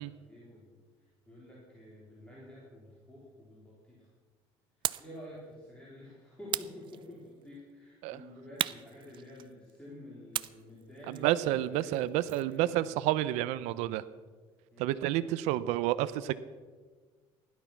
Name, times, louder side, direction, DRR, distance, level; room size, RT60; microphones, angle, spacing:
voice 1, 0.0-4.1 5.0-13.0 14.7-14.9, left 1 dB, 10° left, -6 dB, 3.8 m, -50 dB
sound 1, 4.8-5.2 6.5-7.4 8.6-9.7 10.3-12.6, right 12 dB, 45° right, 0.4 m, -37 dB
voice 2, 11.1-14.0 14.8-16.3, right 14 dB, 85° right, 14 dB, 0.6 m, -30 dB
16.5 x 11.5 x 5.9 m, 1.5 s
cardioid pair, 135°, 11 cm